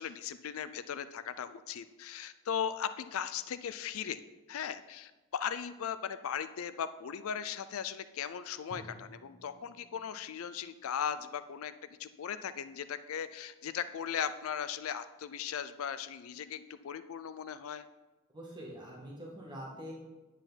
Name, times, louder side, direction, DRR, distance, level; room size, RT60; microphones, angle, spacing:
voice 1, 0.0-4.2 4.5-11.7 12.0-17.9, left 8 dB, 70° left, 13 dB, 0.4 m, -38 dB
Drum, 8.7-12.5, equal, 50° left, 1.5 m, -56 dB
voice 2, 18.3-19.9, equal, 20° right, -4 dB, 1.7 m, -44 dB
9.8 x 8.1 x 4.1 m, 1.2 s
head